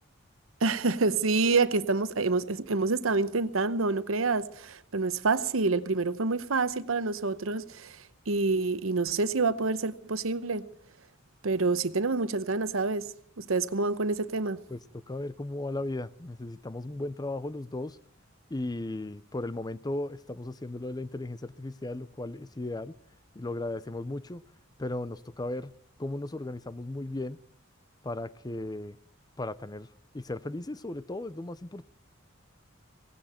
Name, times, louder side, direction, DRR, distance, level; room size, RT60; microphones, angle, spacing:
voice 1, 0.6-10.7 11.4-13.1 13.4-14.6, right 3 dB, 90° right, 0.9 m, -27 dB
voice 2, 15.1-18.0 18.5-22.9 23.3-24.4 24.8-25.7 26.0-27.4 28.0-29.0 29.4-29.9 30.1-31.9, left 2 dB, 20° left, 0.6 m, -36 dB
18.0 x 17.0 x 4.4 m
head